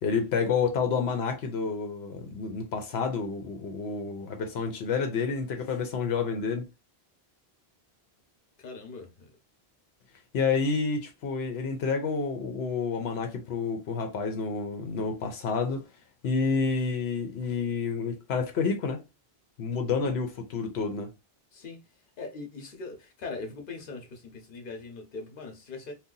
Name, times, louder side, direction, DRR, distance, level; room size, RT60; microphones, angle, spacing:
voice 1, 0.0-6.7 10.3-15.9 16.2-19.0 19.6-21.1, left 5 dB, 85° left, 0.9 m, -29 dB
voice 2, 8.6-9.3 21.5-21.8 22.2-25.9, left 3 dB, 55° left, 1.0 m, -41 dB
2.7 x 2.3 x 3.7 m
omnidirectional pair, 1.1 m